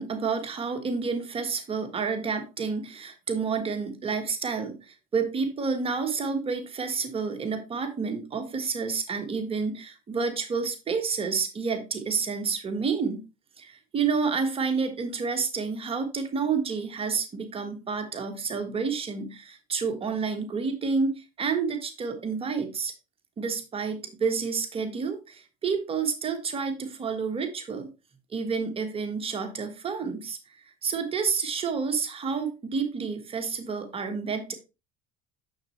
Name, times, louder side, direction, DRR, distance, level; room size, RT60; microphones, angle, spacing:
voice 1, 0.0-13.2 13.6-22.9 23.4-27.9 28.3-34.5, right 5 dB, 30° right, 1.5 m, -29 dB
6.7 x 6.4 x 3.2 m
supercardioid pair, 90°, 18 cm